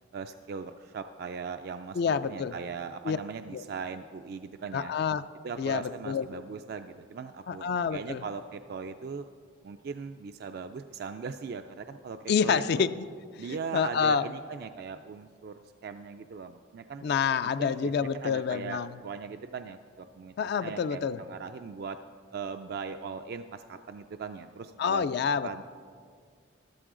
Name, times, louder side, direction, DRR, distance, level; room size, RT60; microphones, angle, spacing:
voice 1, 0.1-4.9 5.4-7.7 7.9-9.3 9.6-12.9 13.4-17.0 17.6-22.0 22.3-25.0 25.4-25.6, right 5 dB, 55° right, 8 dB, 0.3 m, -39 dB
voice 2, 2.0-2.5 3.0-3.2 3.5-3.6 4.7-5.2 5.6-6.3 7.5-8.2 12.3-13.1 13.3-14.3 17.0-19.0 20.4-21.2 24.8-25.6, left 6 dB, 55° left, 12 dB, 0.3 m, -28 dB
13.0 x 12.5 x 3.8 m, 2.1 s
head